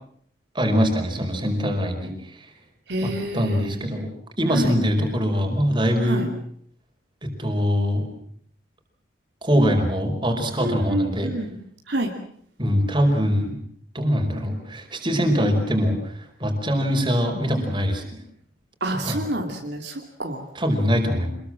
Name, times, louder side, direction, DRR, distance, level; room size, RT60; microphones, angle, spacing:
voice 1, 0.5-2.5 3.0-4.1 4.4-6.3 7.2-8.1 9.4-11.3 12.6-13.6 13.9-18.2 18.9-19.2 20.5-21.4, equal, 25° right, 4 dB, 5.0 m, -23 dB
voice 2, 2.9-3.8 4.5-4.6 6.1-6.2 10.6-11.5 11.9-12.1 18.8-20.4, right 1 dB, 55° right, 2 dB, 2.7 m, -28 dB
27.5 x 21.0 x 7.6 m, 0.63 s
head